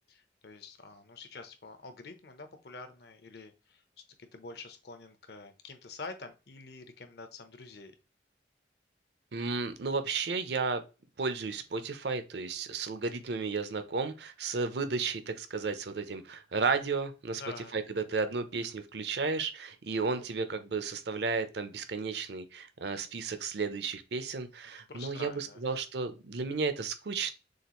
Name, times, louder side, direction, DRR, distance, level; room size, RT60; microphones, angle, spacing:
voice 1, 0.1-3.8 4.2-7.9 17.3-17.8 24.9-25.9, left 3 dB, 60° left, 0.8 m, -47 dB
voice 2, 9.3-10.8 11.2-17.4 17.7-27.3, right 4 dB, 65° right, 0.6 m, -33 dB
6.5 x 2.5 x 3.0 m
head